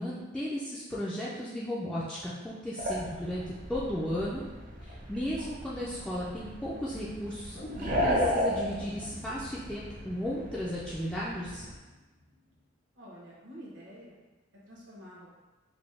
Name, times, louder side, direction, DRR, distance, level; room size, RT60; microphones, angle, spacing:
voice 1, 0.0-4.4 4.8-11.7, equal, 5° left, -8 dB, 0.3 m, -35 dB
sound 1, 2.8-11.8, equal, 45° right, 0.6 m, -35 dB
sound 2, 7.5-11.6 11.9-12.0, left 1 dB, 55° left, 0.7 m, -44 dB
voice 2, 12.9-14.2 14.6-15.3, equal, 90° right, -5 dB, 1.1 m, -48 dB
4.0 x 2.1 x 3.3 m, 1.2 s
head